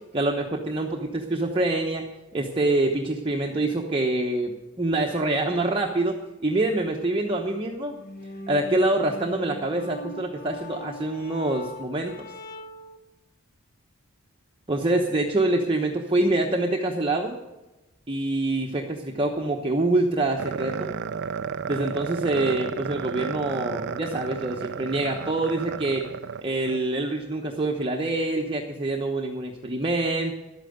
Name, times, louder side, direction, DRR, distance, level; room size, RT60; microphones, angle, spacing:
voice 1, 0.1-2.0 2.3-6.1 6.4-8.0 8.5-12.3 14.7-17.4 18.1-20.9 21.7-26.0 26.4-30.3, right 2 dB, 25° right, 0 dB, 1.0 m, -25 dB
sound 1, 7.9-13.0, left 1 dB, 40° left, 1.2 m, -41 dB
sound 2, 20.4-26.8, right 6 dB, 50° right, 0.4 m, -33 dB
12.0 x 8.9 x 8.0 m, 1.0 s
head